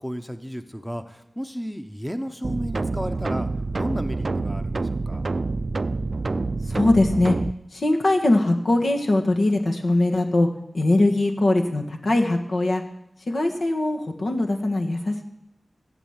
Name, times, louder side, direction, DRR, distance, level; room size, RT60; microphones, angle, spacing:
voice 1, 0.0-3.5 3.8-5.2, equal, 5° left, 8 dB, 0.8 m, -33 dB
sound 1, 2.4-7.5, right 3 dB, 55° right, 0.4 m, -27 dB
voice 2, 6.7-7.3 7.7-10.5 10.7-12.8 13.3-15.2, left 2 dB, 75° left, 3 dB, 1.5 m, -21 dB
15.0 x 8.3 x 7.3 m, 0.85 s
wide cardioid pair, 85°, 0 cm